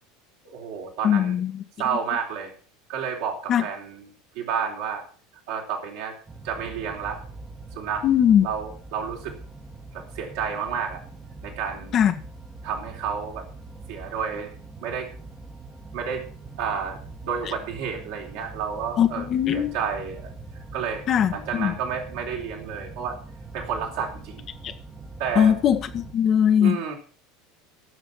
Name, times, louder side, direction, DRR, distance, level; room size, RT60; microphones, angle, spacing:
voice 1, 0.4-1.4 1.8-2.5 2.9-4.0 4.3-5.0 5.5-6.1 6.4-7.2 7.7-8.0 8.4-9.3 9.9-11.0 11.4-12.0 12.6-13.4 13.9-14.5 14.8-15.1 15.9-16.2 16.6-17.0 17.2-19.3 19.5-20.3 20.7-21.0 21.3-23.2 23.5-24.5 25.2-25.6 26.6-27.0, right 7 dB, 60° right, 3.9 m, -30 dB
voice 2, 1.0-1.6 3.5-3.6 8.0-8.5 11.9-12.1 19.0-19.7 21.1-21.7 24.6-24.7 25.3-26.8, left 9 dB, 40° left, 1.4 m, -20 dB
sound 1, 6.3-26.1, right 3 dB, 15° right, 1.6 m, -42 dB
15.5 x 6.8 x 6.1 m
figure-of-eight pair, 75°, 0 cm